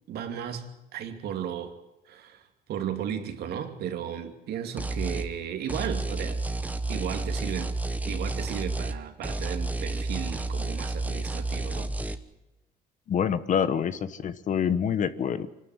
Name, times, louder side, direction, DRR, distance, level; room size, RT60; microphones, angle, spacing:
voice 1, 0.1-1.7 2.1-2.4 2.7-6.4 6.9-7.7 8.0-11.9, right 9 dB, 70° right, 6 dB, 2.7 m, -34 dB
sound 1, 4.8-5.3 5.7-9.0 9.2-12.2, right 2 dB, 10° right, 1.2 m, -31 dB
voice 2, 13.1-15.5, left 8 dB, 50° left, 14 dB, 1.2 m, -26 dB
24.5 x 12.5 x 9.7 m, 0.98 s
cardioid pair, 110°, 17 cm